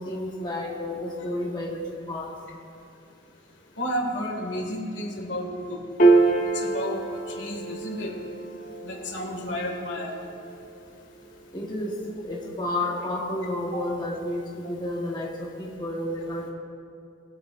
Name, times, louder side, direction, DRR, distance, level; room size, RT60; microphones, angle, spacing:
voice 1, 0.0-2.4 11.5-11.9 12.2-16.5, left 1 dB, 25° left, -3 dB, 1.2 m, -31 dB
voice 2, 3.8-5.8 6.5-7.0 7.3-8.1 8.8-10.2 13.7-13.8 14.6-14.7, equal, 65° left, 0 dB, 1.8 m, -32 dB
Piano, 6.0-12.6, right 3 dB, 45° left, 1.0 m, -26 dB
20.0 x 8.4 x 2.5 m, 2.5 s
head